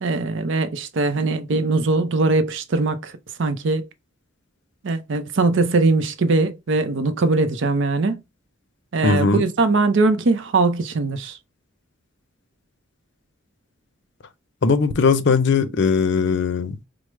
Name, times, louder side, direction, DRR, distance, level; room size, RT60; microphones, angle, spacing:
voice 1, 0.0-3.1 3.4-3.9 4.8-8.2 8.9-11.4, right 3 dB, 65° right, 0.5 m, -21 dB
voice 2, 9.0-9.4 14.6-16.9, left 5 dB, 60° left, 0.5 m, -19 dB
4.7 x 2.0 x 3.0 m
head